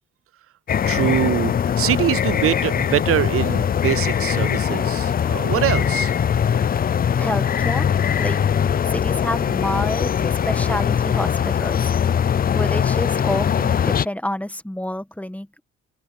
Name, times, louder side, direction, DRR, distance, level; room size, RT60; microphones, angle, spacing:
sound 1, 0.7-14.0, left 8 dB, 30° left, 0.4 m, -21 dB
voice 1, 0.9-6.1, right 12 dB, 50° right, 0.4 m, -23 dB
voice 2, 7.2-7.9 8.1-8.4 8.9-11.9 12.6-15.6, left 1 dB, 5° left, 1.6 m, -28 dB
open air
cardioid pair, 90°, 30 cm